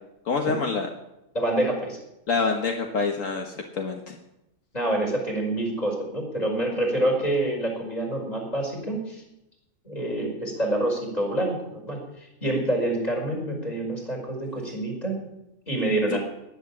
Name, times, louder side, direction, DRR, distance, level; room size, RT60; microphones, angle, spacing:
voice 1, 0.3-0.9 2.3-4.2 16.1-16.2, left 4 dB, 75° left, 3 dB, 1.8 m, -26 dB
voice 2, 1.3-2.0 4.7-9.2 9.9-15.2 15.7-16.2, right 1 dB, 30° left, 1 dB, 5.3 m, -27 dB
18.5 x 10.5 x 7.4 m, 0.90 s
omnidirectional pair, 1.4 m